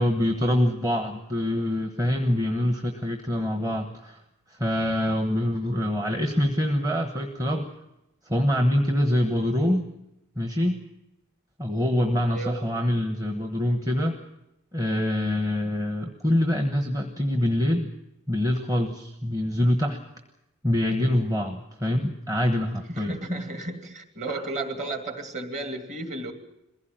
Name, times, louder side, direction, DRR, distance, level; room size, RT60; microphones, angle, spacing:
voice 1, 0.0-4.2 4.5-7.7 8.2-9.9 10.4-10.8 11.6-14.2 14.7-17.9 18.3-20.0 20.6-23.1 24.3-24.4, left 1 dB, 15° right, 5 dB, 1.2 m, -25 dB
voice 2, 12.3-12.6 22.9-26.3, right 2 dB, 30° right, 7 dB, 2.5 m, -33 dB
22.0 x 16.0 x 8.9 m, 0.89 s
head